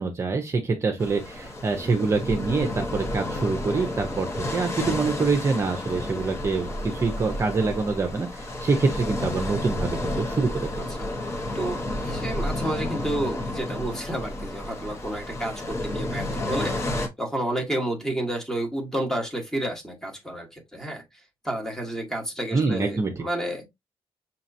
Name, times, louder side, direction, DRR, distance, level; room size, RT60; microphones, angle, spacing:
voice 1, 0.0-10.9 22.5-23.1, right 4 dB, 30° right, 0.7 m, -25 dB
sound 1, 1.0-17.1, left 1 dB, 30° left, 1.0 m, -31 dB
voice 2, 10.8-11.1 11.5-11.8 12.0-16.8 17.2-21.0 21.4-23.6, right 1 dB, 5° left, 1.2 m, -30 dB
5.7 x 2.9 x 2.6 m
wide cardioid pair, 175°, 10 cm